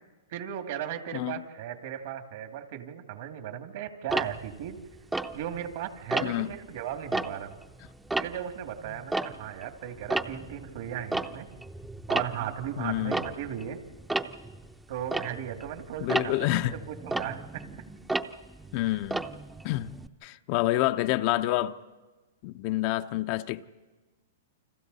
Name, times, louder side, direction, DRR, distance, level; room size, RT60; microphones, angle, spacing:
voice 1, 0.3-4.8 5.3-7.6 8.2-11.5 12.1-13.8 14.9-17.7, right 10 dB, 60° right, 2.4 m, -36 dB
Tick-tock, 4.1-5.7 6.1-6.5 7.0-9.7 10.0-20.1, right 2 dB, 5° right, 0.7 m, -33 dB
voice 2, 12.8-13.1 16.0-16.7 18.7-19.2 19.6-19.9 20.2-21.8 22.4-23.6, left 16 dB, 45° left, 0.7 m, -28 dB
29.0 x 25.5 x 4.2 m
hypercardioid pair, 130°, 0 cm